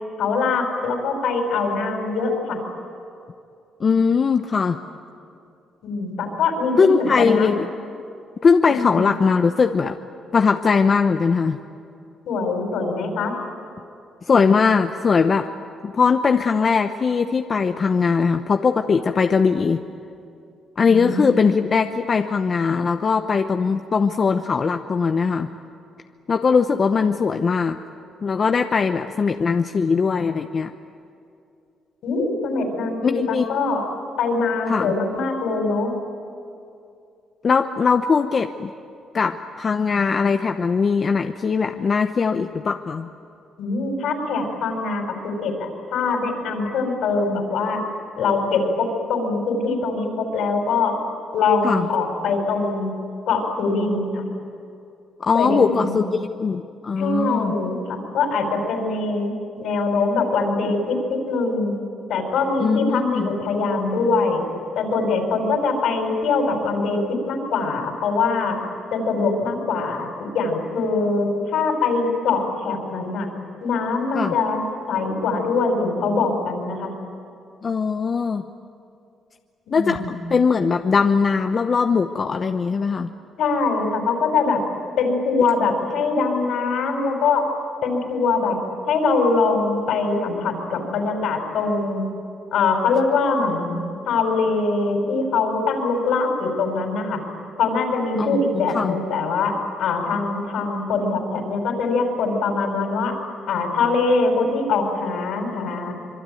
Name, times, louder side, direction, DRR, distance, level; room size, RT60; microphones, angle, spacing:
voice 1, 0.2-2.6 5.8-7.5 8.7-9.1 12.3-13.3 20.8-21.6 32.0-33.8 34.2-35.9 43.6-47.8 48.2-50.9 51.3-52.9 53.3-54.2 55.3-56.1 57.0-61.7 62.1-64.4 64.8-68.6 68.9-73.3 73.6-74.6 74.9-76.9 79.7-80.2 83.4-84.6 85.0-87.5 87.8-88.6 88.9-92.0 92.5-93.8 94.0-97.2 97.6-103.1 103.5-105.9, left 4 dB, 80° left, 3 dB, 5.6 m, -23 dB
voice 2, 3.8-4.8 6.8-7.7 8.4-10.0 10.3-11.6 14.3-15.5 15.8-19.8 20.8-25.5 26.3-27.8 28.2-30.7 33.0-33.4 34.7-34.9 37.4-38.7 39.1-43.1 51.6-51.9 55.2-57.5 62.6-63.3 74.1-74.3 77.6-78.4 79.7-83.1 98.2-98.4 98.7-99.0, left 5 dB, 45° left, 6 dB, 0.9 m, -20 dB
26.0 x 23.0 x 9.3 m, 2.5 s
cardioid pair, 90°, 0 cm